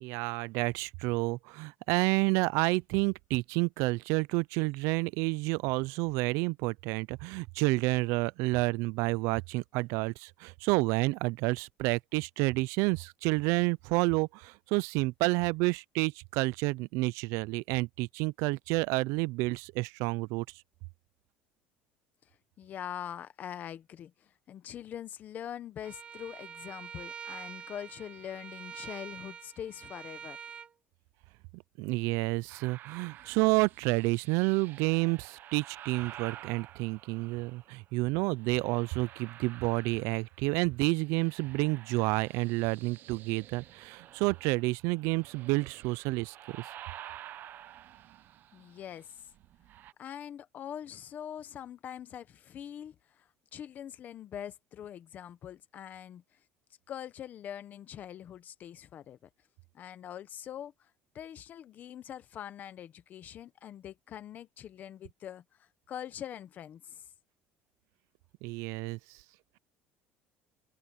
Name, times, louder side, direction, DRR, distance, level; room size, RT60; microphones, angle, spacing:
voice 1, 0.0-20.4 31.5-46.6 68.4-69.0, right 24 dB, 70° right, 0.4 m, -29 dB
voice 2, 22.6-30.4 48.5-49.2 50.0-56.2 56.9-59.2 59.7-60.9 61.1-67.1, left 10 dB, 35° left, 0.9 m, -43 dB
Bowed string instrument, 25.8-30.7, right 7 dB, 20° right, 0.5 m, -45 dB
sound 1, 32.5-37.8 38.3-40.6 40.8-49.9, right 12 dB, 45° right, 0.9 m, -50 dB
cardioid pair, 160°, 5 cm